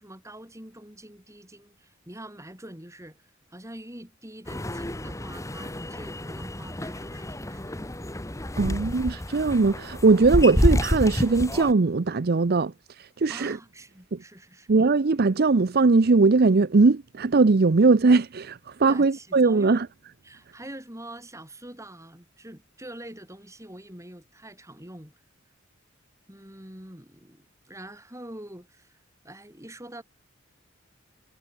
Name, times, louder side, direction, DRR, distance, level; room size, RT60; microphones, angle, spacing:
voice 1, 0.0-3.2 3.5-7.9 13.3-14.7 18.9-19.8 20.2-25.1 26.3-29.0 29.2-30.0, right 1 dB, 15° right, 6.1 m, -44 dB
sound 1, 4.5-11.7, left 1 dB, 15° left, 1.5 m, -29 dB
voice 2, 8.6-13.6 14.1-14.2 14.7-19.9, right 3 dB, 50° right, 0.6 m, -20 dB
head